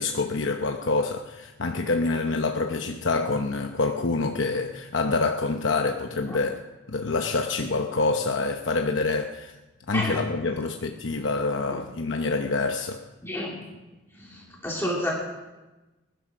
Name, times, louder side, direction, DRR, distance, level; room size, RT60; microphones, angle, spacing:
voice 1, 0.0-6.6 6.9-9.5 9.9-13.0, left 3 dB, 85° left, 4 dB, 0.9 m, -26 dB
voice 2, 13.2-13.7 14.2-15.1, left 1 dB, 15° left, -4 dB, 2.8 m, -30 dB
19.5 x 11.5 x 6.2 m, 1.1 s
head